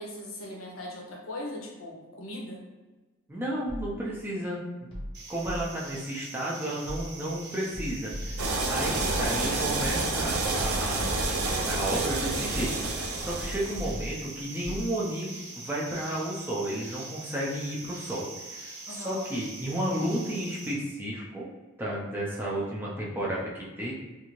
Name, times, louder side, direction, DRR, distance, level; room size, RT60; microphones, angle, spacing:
voice 1, 0.0-2.6 18.9-19.3, left 1 dB, 70° left, -1 dB, 0.7 m, -39 dB
voice 2, 3.3-4.9 5.3-8.3 8.7-11.2 11.6-15.3 15.6-21.5 21.8-23.9, right 1 dB, 10° right, -5 dB, 0.4 m, -32 dB
sound 1, 3.7-4.2 4.9-6.0 6.8-7.4 7.7-9.9 10.6-11.6 12.5-13.0 13.4-14.9, equal, 25° left, 0.8 m, -39 dB
sound 2, 5.1-20.7, right 2 dB, 55° right, 0.7 m, -42 dB
sound 3, 8.4-13.9, right 2 dB, 90° right, 0.5 m, -29 dB
2.6 x 2.5 x 3.0 m, 1.2 s
head